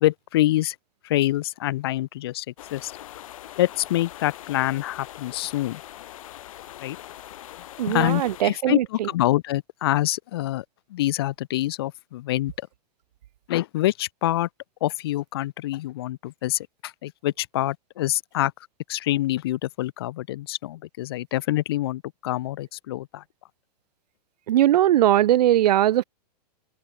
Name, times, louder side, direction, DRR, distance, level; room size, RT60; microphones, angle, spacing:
voice 1, 0.0-0.8 1.0-2.5 2.7-2.9 3.6-5.8 6.8-7.0 7.9-10.6 10.9-12.5 13.5-14.5 14.8-18.5 18.9-23.2, left 15 dB, 35° left, 0.5 m, -26 dB
sound 1, 2.6-8.4, left 13 dB, 55° left, 3.3 m, -42 dB
voice 2, 7.8-9.1 24.5-26.0, right 12 dB, 75° right, 0.6 m, -20 dB
supercardioid pair, 175°, 21 cm